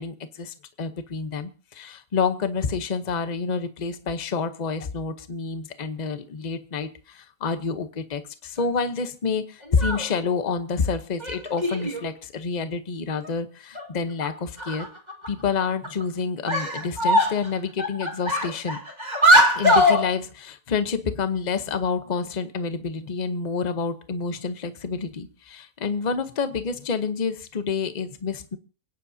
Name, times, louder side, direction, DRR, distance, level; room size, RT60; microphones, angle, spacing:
voice 1, 0.0-14.9 15.3-18.8 19.5-28.6, left 5 dB, 35° left, 10 dB, 0.9 m, -28 dB
sound 1, 9.6-10.1 11.2-12.1 13.2-13.3 13.7-13.9 14.2-14.3 14.6-15.3 15.8-16.0 16.5-17.5 17.8-20.0, equal, 30° right, 2.2 m, -21 dB
29.0 x 9.8 x 2.8 m, 0.37 s
omnidirectional pair, 1.6 m